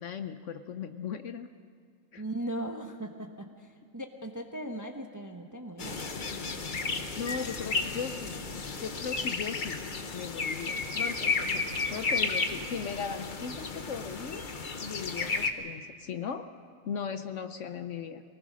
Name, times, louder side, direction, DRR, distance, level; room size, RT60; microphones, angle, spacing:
voice 1, 0.0-1.5 2.1-2.2 6.2-6.5 6.7-8.4 8.7-9.8 10.1-11.6 11.9-14.4 14.8-16.5 16.8-18.2, left 7 dB, 65° left, 9 dB, 1.0 m, -38 dB
voice 2, 2.2-6.0, right 1 dB, 15° right, 4 dB, 0.9 m, -38 dB
sound 1, 5.8-15.5, left 4 dB, 40° left, 1.0 m, -33 dB
24.5 x 19.5 x 6.2 m, 2.1 s
omnidirectional pair, 1.5 m